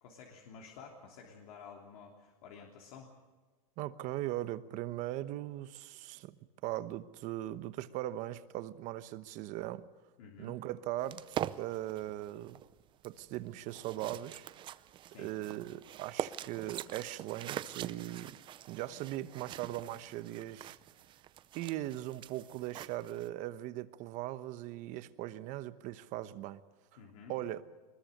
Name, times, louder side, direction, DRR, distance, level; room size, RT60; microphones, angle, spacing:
voice 1, 0.0-3.1 10.2-10.6 15.1-15.3 27.0-27.4, left 6 dB, 75° left, 3.2 m, -52 dB
voice 2, 3.8-9.9 10.4-12.6 13.0-14.8 15.2-18.4 18.7-20.8 21.5-26.6 27.3-27.6, right 14 dB, 40° right, 1.0 m, -39 dB
sound 1, 11.0-23.3, right 11 dB, 25° right, 0.6 m, -44 dB
22.5 x 21.0 x 6.7 m
supercardioid pair, 150°, 19 cm